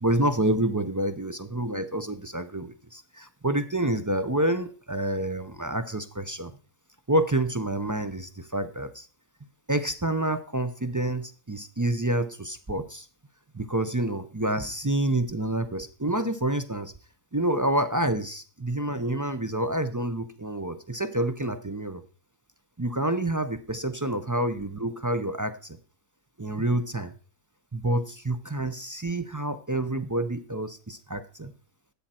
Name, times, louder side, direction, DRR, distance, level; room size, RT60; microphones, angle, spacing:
voice 1, 0.0-6.5 7.1-9.1 9.7-13.1 13.5-16.9 17.3-22.0 22.8-25.8 26.4-27.1 27.7-31.5, right 1 dB, 25° right, 11 dB, 0.4 m, -28 dB
13.5 x 8.9 x 4.3 m, 0.39 s
omnidirectional pair, 1.5 m